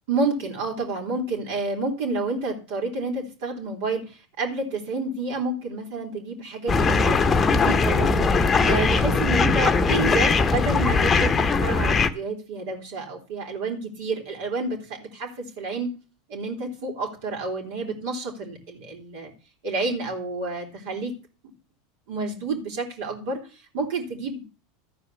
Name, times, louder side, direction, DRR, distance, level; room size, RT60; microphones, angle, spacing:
voice 1, 0.1-7.2 7.5-8.3 8.6-15.9 16.3-19.3 19.6-21.1 22.1-24.4, right 3 dB, 70° right, 1 dB, 3.7 m, -29 dB
sound 1, 6.7-12.1, left 4 dB, 25° left, 0.9 m, -20 dB
13.0 x 5.0 x 6.9 m, 0.36 s
hypercardioid pair, 100°, 0 cm